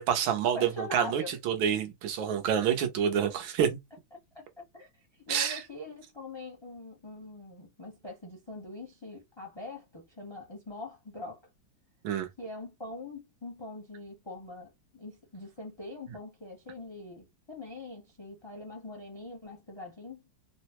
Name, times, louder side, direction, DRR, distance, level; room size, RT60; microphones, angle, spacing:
voice 1, 0.0-3.7 5.3-5.6 12.0-12.3, right 8 dB, 85° right, 1.6 m, -28 dB
voice 2, 0.5-1.3 4.1-4.4 4.7-4.9 5.3-11.4 12.4-20.2, left 2 dB, 35° left, 0.4 m, -43 dB
3.7 x 2.1 x 2.9 m
omnidirectional pair, 2.1 m